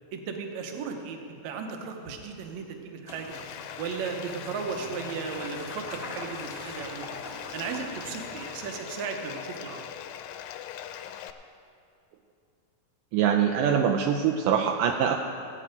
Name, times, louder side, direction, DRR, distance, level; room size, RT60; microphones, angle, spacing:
voice 1, 0.1-3.4 3.8-7.1 7.5-9.9, right 5 dB, 65° right, 4 dB, 1.9 m, -35 dB
sound 1, 3.0-8.7, left 2 dB, 25° left, 1.2 m, -43 dB
Bathtub (filling or washing), 3.3-11.3, left 10 dB, 90° left, 2.4 m, -41 dB
voice 2, 13.1-15.2, right 8 dB, 80° right, 3 dB, 2.0 m, -23 dB
17.0 x 8.7 x 5.2 m, 2.5 s
omnidirectional pair, 4.1 m